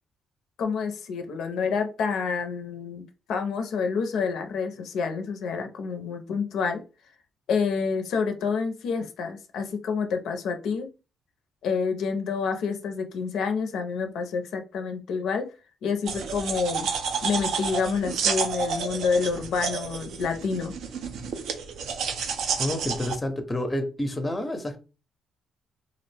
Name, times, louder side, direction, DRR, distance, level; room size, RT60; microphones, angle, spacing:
voice 1, 0.6-6.8 7.5-10.9 11.6-15.5 15.8-16.9 17.2-20.7, left 5 dB, 75° left, 0.4 m, -28 dB
sound 1, 16.1-23.2, right 6 dB, 75° right, 0.4 m, -30 dB
voice 2, 22.6-24.8, left 1 dB, 15° left, 0.5 m, -29 dB
2.4 x 2.0 x 3.2 m
cardioid pair, 90°, 0 cm